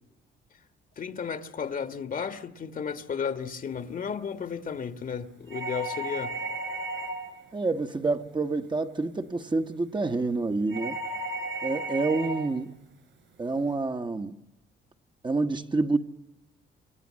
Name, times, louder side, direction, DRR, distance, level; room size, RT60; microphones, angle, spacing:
voice 1, 1.0-6.4, left 6 dB, 45° left, 1.5 m, -33 dB
sound 1, 5.5-7.4 10.7-12.5, right 2 dB, 70° right, 6.1 m, -34 dB
voice 2, 7.5-11.0 11.6-12.8 13.4-14.4 15.2-16.0, right 3 dB, 25° right, 1.1 m, -28 dB
28.0 x 24.0 x 7.5 m
cardioid pair, 90°, 20 cm